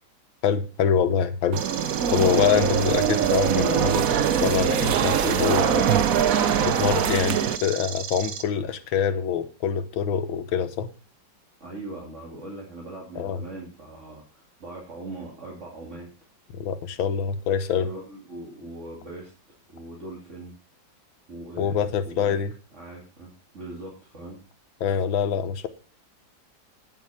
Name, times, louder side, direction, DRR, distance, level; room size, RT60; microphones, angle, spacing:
voice 1, 0.4-1.6 2.1-4.0 4.4-5.9 6.6-10.9 13.2-13.4 16.5-17.9 21.6-22.5 24.8-25.7, left 7 dB, 85° left, 11 dB, 1.8 m, -25 dB
sound 1, 1.5-7.6, right 8 dB, 60° right, 1.0 m, -23 dB
sound 2, 1.6-8.4, right 7 dB, 85° right, 1.9 m, -35 dB
voice 2, 2.5-2.8 11.6-16.1 17.8-19.3 19.7-20.5 21.3-22.4 22.7-24.4, right 2 dB, 35° right, -3 dB, 3.0 m, -40 dB
10.0 x 7.8 x 5.7 m, 0.35 s
omnidirectional pair, 2.1 m